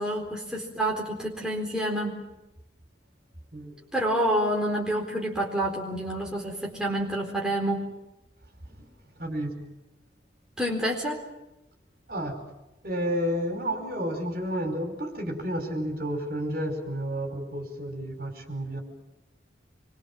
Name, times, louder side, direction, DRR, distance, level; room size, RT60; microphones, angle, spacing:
voice 1, 0.0-2.2 3.9-7.9 10.6-11.2, right 1 dB, 5° right, -2 dB, 4.2 m, -28 dB
voice 2, 9.2-9.6 12.1-12.4 12.8-18.8, equal, 50° right, 4 dB, 5.1 m, -31 dB
26.5 x 23.5 x 7.5 m, 0.94 s
head